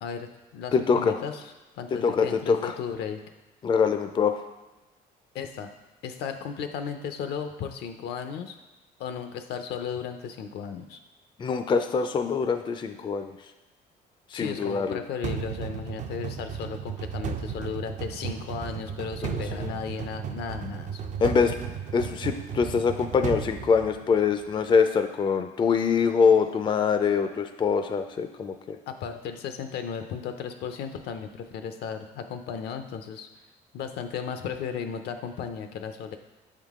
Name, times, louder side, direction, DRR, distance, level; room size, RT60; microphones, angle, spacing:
voice 1, 0.0-3.2 5.3-5.7 6.0-8.6 9.0-11.0 14.3-21.2 28.9-33.3 33.7-36.2, left 7 dB, 75° left, 7 dB, 0.6 m, -35 dB
voice 2, 0.7-1.1 1.9-2.7 3.6-4.4 11.4-13.3 14.3-15.0 19.3-19.7 21.2-21.5 21.9-28.8, left 5 dB, 30° left, 7 dB, 0.4 m, -24 dB
sound 1, 15.2-24.4, right 7 dB, 45° right, 0.4 m, -35 dB
7.2 x 3.7 x 3.6 m, 1.1 s
cardioid pair, 100°, 17 cm